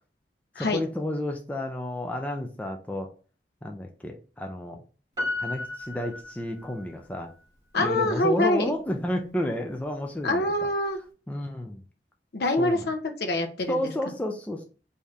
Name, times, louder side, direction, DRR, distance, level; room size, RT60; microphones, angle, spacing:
voice 1, 0.6-3.1 3.6-4.8 5.4-7.3 7.8-10.5 11.3-11.8 12.6-12.9 13.7-14.6, left 1 dB, 10° left, 2 dB, 0.3 m, -31 dB
Piano, 5.2-7.0 7.3-7.4, left 2 dB, 20° right, 1.4 m, -34 dB
voice 2, 7.7-8.7 10.2-11.0 12.3-13.8, left 1 dB, 60° left, 5 dB, 0.6 m, -25 dB
3.6 x 2.7 x 3.1 m, 0.37 s
head